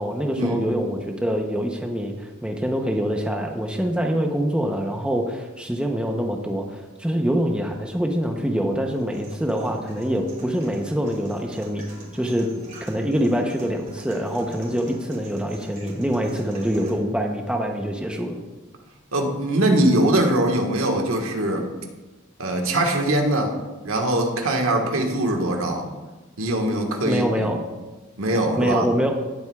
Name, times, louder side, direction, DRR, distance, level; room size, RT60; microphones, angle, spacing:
voice 1, 0.0-11.8 12.1-12.5 12.8-18.4 27.0-27.6 28.6-29.2, equal, 5° right, 2 dB, 0.7 m, -25 dB
sound 1, 8.9-16.9, right 1 dB, 40° right, 3.2 m, -42 dB
voice 2, 19.1-21.7 22.4-23.5 23.8-25.9 26.4-27.6 28.2-28.9, right 1 dB, 75° right, 2 dB, 1.5 m, -22 dB
18.0 x 7.7 x 2.3 m, 1.2 s
head